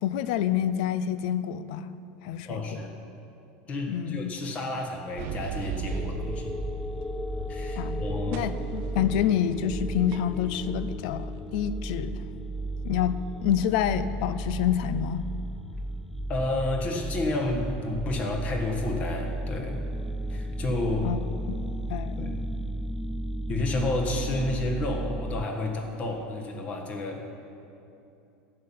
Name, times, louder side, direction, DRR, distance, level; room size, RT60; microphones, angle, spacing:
voice 1, 0.0-1.9 2.2-2.8 3.9-4.3 7.8-8.0 8.3-12.2 12.8-15.3 21.0-21.6 21.9-22.3, left 9 dB, 70° left, 14 dB, 0.5 m, -28 dB
voice 2, 2.4-2.9 3.7-6.5 7.5-8.5 16.3-19.8 20.3-21.1 22.2-22.6 23.5-27.3, left 2 dB, 30° left, 3 dB, 1.4 m, -31 dB
sound 1, 5.2-8.0 8.3-11.8, right 8 dB, 50° right, 0.6 m, -40 dB
sound 2, 5.9-25.4, right 1 dB, 5° left, 0.4 m, -34 dB
12.5 x 5.8 x 8.6 m, 2.7 s
supercardioid pair, 150°, 5 cm